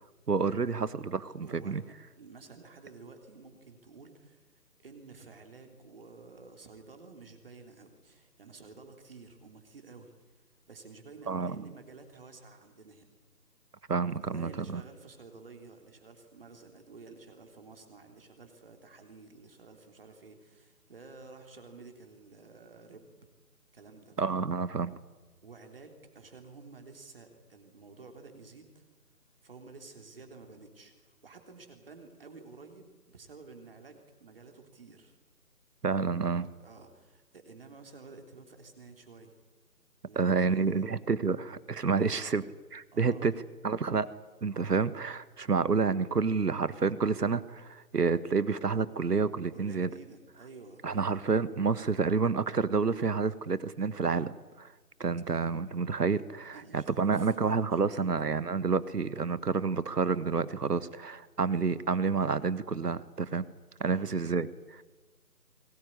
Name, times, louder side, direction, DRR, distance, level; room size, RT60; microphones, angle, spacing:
voice 1, 0.3-1.8 11.3-11.6 13.9-14.8 24.2-24.9 35.8-36.5 40.1-42.4 42.7-43.3 43.6-44.1 44.4-49.9 50.8-54.7 55.0-63.4 63.8-64.8, right 5 dB, 75° right, 16 dB, 1.5 m, -29 dB
voice 2, 1.4-4.4 4.8-13.1 14.1-23.1 23.7-24.2 25.4-28.9 29.4-35.2 36.6-39.3 40.0-40.8 41.9-42.3 42.9-43.3 49.5-51.5 56.5-58.2 63.8-64.2, right 4 dB, 35° right, 5 dB, 3.4 m, -51 dB
22.0 x 19.0 x 9.9 m, 1.2 s
figure-of-eight pair, 170°, 48 cm